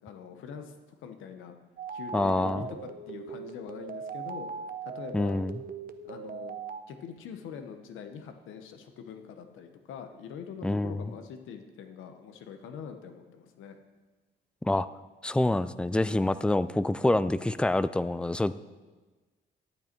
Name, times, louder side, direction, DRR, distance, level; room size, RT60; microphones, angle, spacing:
voice 1, 0.0-1.5 1.9-2.8 3.1-4.5 4.8-5.4 6.0-6.6 6.9-13.8, left 7 dB, 85° left, 7 dB, 1.0 m, -43 dB
sound 1, 1.8-6.8, right 6 dB, 45° right, 0.8 m, -39 dB
voice 2, 2.1-2.7 5.1-5.6 10.6-11.1 14.6-14.9 15.2-18.5, left 2 dB, 5° left, 15 dB, 0.3 m, -26 dB
11.5 x 8.5 x 4.5 m, 1.3 s
cardioid pair, 90°, 20 cm